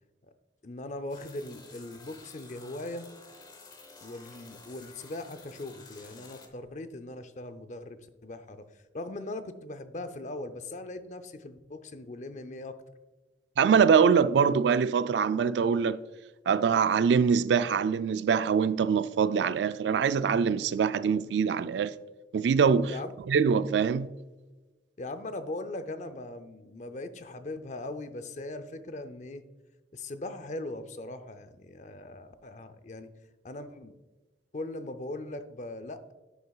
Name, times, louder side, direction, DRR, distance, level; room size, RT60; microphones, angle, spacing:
voice 1, 0.6-3.1 4.0-8.6 8.9-12.8 22.9-23.1 25.0-29.4 29.9-33.1 33.4-33.9 34.5-36.1, left 2 dB, 45° left, 0.6 m, -40 dB
sound 1, 1.1-6.5, left 3 dB, 25° left, 0.9 m, -52 dB
voice 2, 13.6-16.0 16.5-21.9 22.3-22.9 23.3-24.1, right 6 dB, 75° right, 0.3 m, -24 dB
11.0 x 6.7 x 2.4 m
head